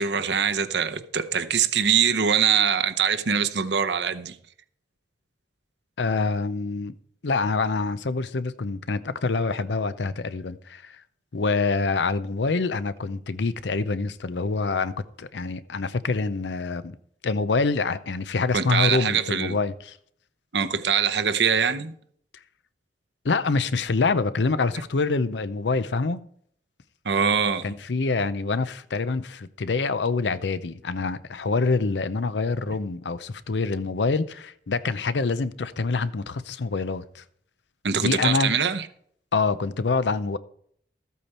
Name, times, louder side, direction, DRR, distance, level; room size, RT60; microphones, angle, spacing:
voice 1, 0.0-4.4 18.5-19.6 20.5-21.9 27.0-27.7 37.8-38.9, right 7 dB, 80° right, 0.8 m, -23 dB
voice 2, 6.0-6.9 7.2-11.0 11.3-17.0 17.2-20.0 23.2-26.2 27.6-37.2 38.0-38.5 39.3-40.4, left 4 dB, 85° left, 0.6 m, -26 dB
13.5 x 8.3 x 4.3 m
head